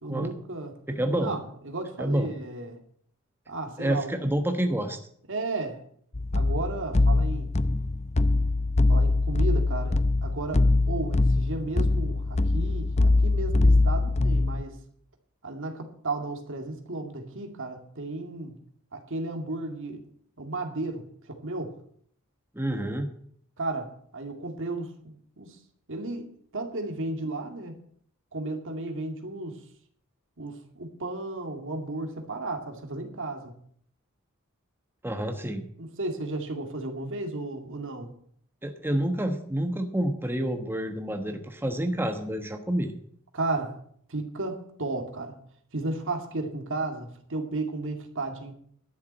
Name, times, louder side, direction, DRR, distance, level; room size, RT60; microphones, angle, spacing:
voice 1, 0.0-0.8 1.2-2.8 3.5-4.1 5.3-5.8 6.3-7.5 8.9-14.8 15.4-18.6 18.9-20.0 20.4-21.7 23.6-25.6 25.9-27.8 28.3-29.6 30.4-33.5 35.8-38.1 43.3-43.8 44.1-45.4 45.7-48.5, right 2 dB, 60° right, 4 dB, 2.3 m, -34 dB
voice 2, 0.9-1.4 2.0-2.3 3.8-5.0 22.5-23.1 35.0-35.6 38.6-42.9, right 1 dB, 10° right, 5 dB, 1.1 m, -28 dB
sound 1, 6.1-14.6, left 2 dB, 30° left, 0.6 m, -23 dB
12.0 x 7.1 x 9.0 m, 0.63 s
head